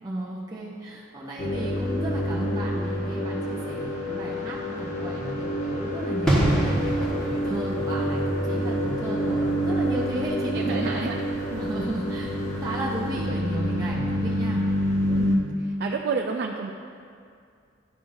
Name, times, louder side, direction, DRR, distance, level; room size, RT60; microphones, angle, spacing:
voice 1, 0.0-11.1 11.6-14.6, right 1 dB, 20° right, -6 dB, 0.6 m, -34 dB
sound 1, 1.4-15.4, equal, 40° left, 0.9 m, -27 dB
sound 2, 6.3-12.8 13.0-13.2, right 1 dB, 5° left, 1.2 m, -29 dB
voice 2, 10.5-11.1 11.5-11.7 15.1-15.3 15.6-16.7, right 5 dB, 60° right, 2 dB, 0.4 m, -30 dB
10.5 x 5.3 x 2.6 m, 2.3 s
head